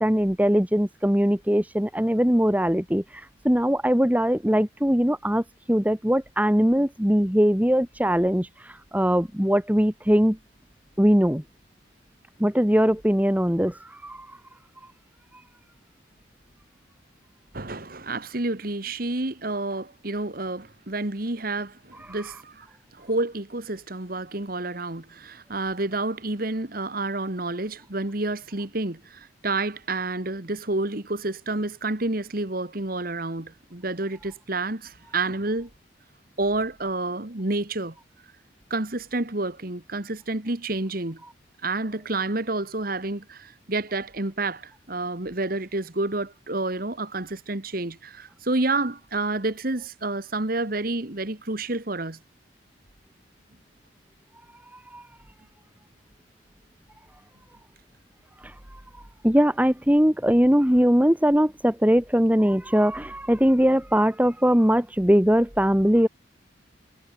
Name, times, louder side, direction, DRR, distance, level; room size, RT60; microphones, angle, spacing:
voice 1, 0.0-10.4 11.0-11.4 12.4-14.3 54.9-55.0 58.4-58.5 59.2-66.1, equal, 10° right, 1.4 m, -21 dB
voice 2, 17.5-22.7 22.9-35.7 36.4-38.0 38.7-41.2 41.6-52.2, right 2 dB, 50° right, 1.7 m, -29 dB
head